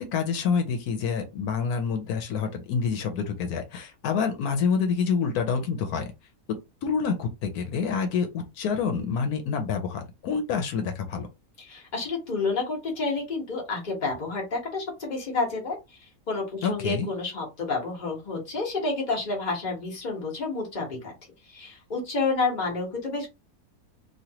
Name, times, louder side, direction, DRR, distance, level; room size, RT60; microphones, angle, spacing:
voice 1, 0.0-6.1 6.8-11.3 16.6-17.1, left 6 dB, 85° left, 1.2 m, -27 dB
voice 2, 11.6-21.1 21.4-23.3, left 3 dB, 30° left, 1.3 m, -30 dB
3.1 x 2.5 x 2.8 m
omnidirectional pair, 1.6 m